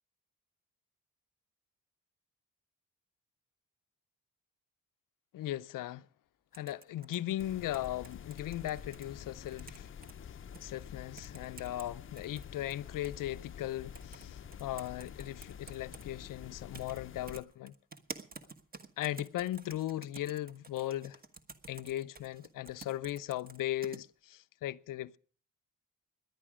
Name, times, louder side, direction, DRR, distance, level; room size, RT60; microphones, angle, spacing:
voice 1, 5.3-6.1 6.5-9.9 10.6-17.7 19.0-21.2 21.7-25.2, left 13 dB, 80° left, 0.6 m, -38 dB
sound 1, 6.5-9.0 9.5-10.1 10.5-10.6 11.2-11.9 12.2-13.2 13.9-14.2 14.5-16.0 16.7-17.0 17.3-24.0, right 3 dB, 30° right, 1.3 m, -50 dB
sound 2, 7.4-17.4, left 8 dB, 40° left, 0.6 m, -48 dB
18.5 x 10.5 x 4.9 m
cardioid pair, 115°, 32 cm